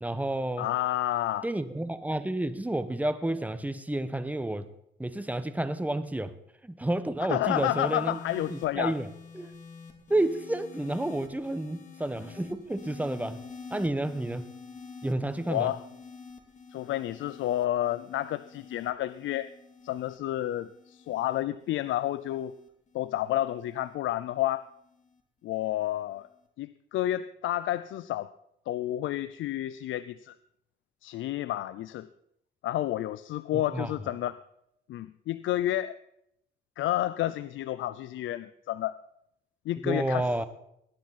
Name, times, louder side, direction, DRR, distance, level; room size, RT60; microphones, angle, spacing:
voice 1, 0.0-0.7 1.4-4.7 5.0-6.3 6.6-8.2 8.5-9.1 9.3-9.5 10.1-13.4 13.7-14.5 15.0-15.7 33.5-33.9 39.8-40.5, right 1 dB, 5° right, 1.1 m, -30 dB
voice 2, 0.6-1.5 7.3-8.9 15.5-15.8 16.7-19.5 19.8-22.5 22.9-24.7 25.4-26.3 26.6-28.3 28.7-30.3 31.0-32.1 32.6-34.4 34.9-36.0 36.8-39.0 39.7-40.2, left 13 dB, 75° left, 0.5 m, -30 dB
sound 1, 7.5-24.0 24.9-25.2, left 5 dB, 40° left, 2.9 m, -48 dB
19.5 x 10.5 x 4.2 m
cardioid pair, 90°, 20 cm